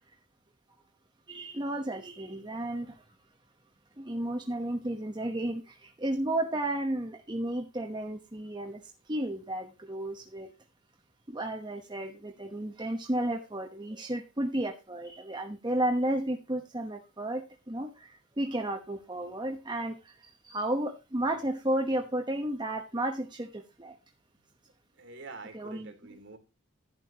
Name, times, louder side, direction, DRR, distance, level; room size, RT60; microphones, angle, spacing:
voice 1, 1.3-3.0 4.0-8.8 9.1-10.5 11.3-24.0 25.5-25.9, right 1 dB, 20° right, 1.1 m, -33 dB
voice 2, 25.0-26.4, right 3 dB, 55° right, 2.7 m, -46 dB
11.5 x 10.5 x 2.9 m
head